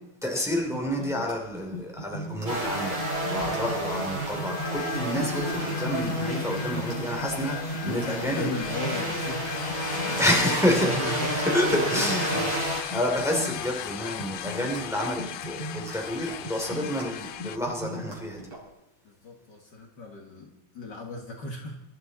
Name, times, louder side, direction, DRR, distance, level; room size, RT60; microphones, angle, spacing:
voice 1, 0.2-8.5 10.2-11.0 11.5-12.4 12.9-18.5, left 1 dB, ahead, 1 dB, 2.8 m, -29 dB
sound 1, 0.7-18.6, equal, 65° right, 5.3 m, -39 dB
sound 2, 2.4-12.8, right 1 dB, 40° right, 7.9 m, -30 dB
sound 3, 4.3-17.6, left 11 dB, 85° left, 1.6 m, -38 dB
voice 2, 7.8-12.7 19.0-21.8, left 2 dB, 55° left, 0 dB, 2.3 m, -37 dB
23.0 x 12.5 x 4.1 m, 0.89 s
omnidirectional pair, 2.4 m